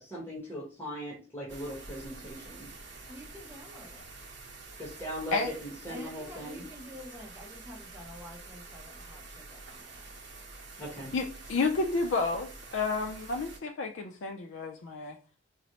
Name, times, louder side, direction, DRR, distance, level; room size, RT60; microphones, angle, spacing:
voice 1, 0.0-2.7 4.8-6.6 10.8-11.1, equal, 10° left, 1.0 m, -39 dB
sound 1, 1.5-13.6, right 3 dB, 70° right, 0.8 m, -47 dB
voice 2, 3.1-4.1 5.9-10.1, left 1 dB, 10° right, 0.5 m, -48 dB
voice 3, 11.1-15.2, left 3 dB, 80° left, 0.4 m, -31 dB
4.1 x 2.0 x 2.9 m
head